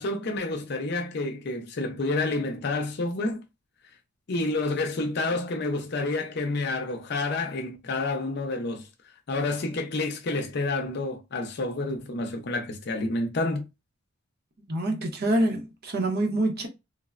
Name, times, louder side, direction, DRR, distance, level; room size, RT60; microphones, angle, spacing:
voice 1, 0.0-3.4 4.3-8.9 9.3-13.7, left 2 dB, 50° left, 0.5 m, -29 dB
voice 2, 14.7-16.7, right 1 dB, 50° right, 0.7 m, -26 dB
3.2 x 2.0 x 2.4 m
head